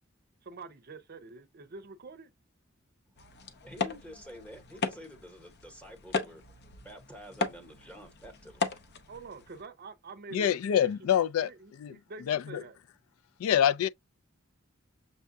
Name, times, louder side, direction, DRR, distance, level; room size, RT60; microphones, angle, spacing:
voice 1, 0.4-2.3 9.1-10.9 11.4-12.8, right 3 dB, 45° right, 0.5 m, -46 dB
voice 2, 3.1-6.4 6.8-8.7, equal, 5° left, 1.0 m, -49 dB
sound 1, 3.2-9.6, left 4 dB, 55° left, 0.7 m, -37 dB
voice 3, 10.3-11.5 11.8-12.0 12.3-12.6 13.4-13.9, left 9 dB, 80° left, 0.3 m, -26 dB
6.5 x 2.3 x 2.6 m
head